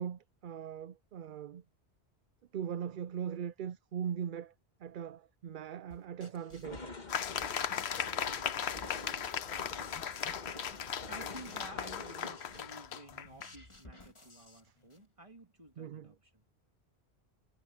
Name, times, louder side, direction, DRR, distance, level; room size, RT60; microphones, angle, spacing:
voice 1, 0.0-1.6 2.5-4.5 4.8-6.9 15.8-16.1, right 8 dB, 60° right, 0.6 m, -40 dB
sound 1, 5.9-8.0 8.3-10.4 10.7-15.0, left 2 dB, 25° left, 2.4 m, -56 dB
sound 2, 6.6-12.9, left 3 dB, 45° left, 1.7 m, -47 dB
sound 3, 7.1-13.5, left 8 dB, 80° left, 1.1 m, -37 dB
voice 2, 10.9-16.5, right 1 dB, 30° right, 2.7 m, -53 dB
omnidirectional pair, 1.1 m